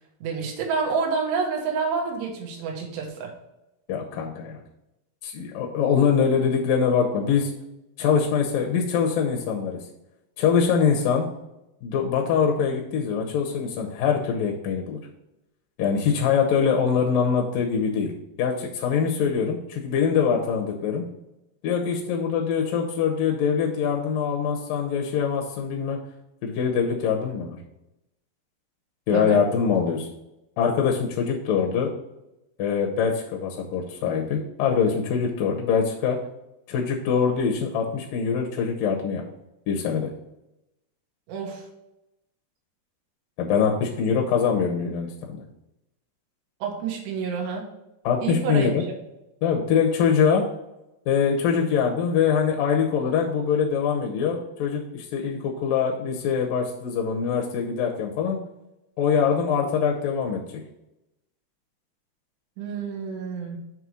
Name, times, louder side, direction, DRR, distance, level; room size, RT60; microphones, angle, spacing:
voice 1, 0.2-3.3 29.1-29.4 41.3-41.7 46.6-47.7 48.2-48.7 62.6-63.6, right 5 dB, 90° right, 0 dB, 3.4 m, -28 dB
voice 2, 3.9-4.6 5.2-7.5 8.0-9.8 10.4-11.3 11.8-15.0 15.8-18.1 18.4-21.0 21.6-26.0 26.4-27.6 29.1-30.1 30.6-31.9 32.6-36.2 36.7-39.2 39.7-40.1 43.4-45.4 48.0-48.8 49.4-50.4 51.1-58.4 59.0-60.6, left 6 dB, 70° left, 0 dB, 2.2 m, -23 dB
7.7 x 3.3 x 6.1 m, 0.90 s
omnidirectional pair, 4.8 m